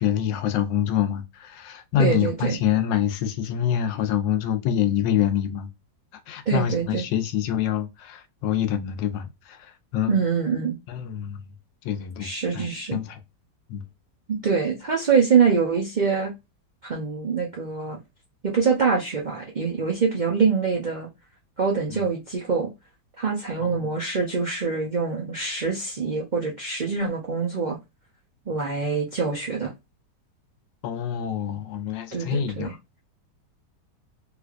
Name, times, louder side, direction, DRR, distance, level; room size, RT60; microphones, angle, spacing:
voice 1, 0.0-5.7 6.3-10.2 10.9-11.5 11.8-13.2 13.7-13.8 21.9-22.0 23.6-23.9 30.8-32.8, left 9 dB, 90° left, 1.3 m, -26 dB
voice 2, 2.0-2.6 6.5-7.0 10.1-10.8 12.2-13.0 14.3-16.3 16.8-18.0 18.4-21.1 21.6-22.7 23.2-27.8 28.5-29.7 32.1-32.7, right 5 dB, 90° right, 0.4 m, -24 dB
3.2 x 3.1 x 2.4 m
omnidirectional pair, 1.9 m